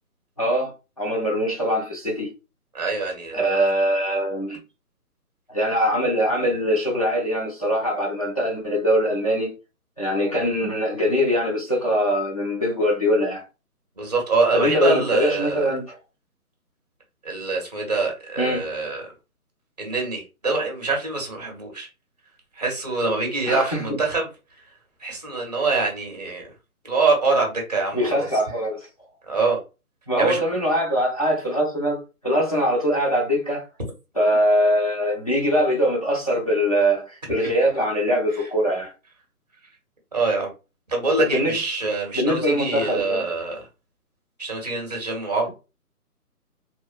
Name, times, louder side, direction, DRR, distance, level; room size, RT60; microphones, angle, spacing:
voice 1, 0.4-2.3 3.3-4.6 5.5-9.5 10.0-13.4 14.5-15.9 18.4-18.7 23.5-24.0 27.9-28.9 30.1-33.6 34.1-38.9 41.2-41.6 42.1-43.3, equal, 25° left, 0.6 m, -22 dB
voice 2, 2.7-3.4 10.3-10.5 14.0-15.6 17.2-19.0 19.8-21.9 22.6-24.3 25.0-26.5 26.8-28.3 29.3-29.6 30.2-30.4 37.4-37.5 40.1-40.5 40.9-43.6 44.4-45.5, right 3 dB, 25° right, 0.6 m, -24 dB
2.8 x 2.0 x 2.3 m
hypercardioid pair, 165°, 46 cm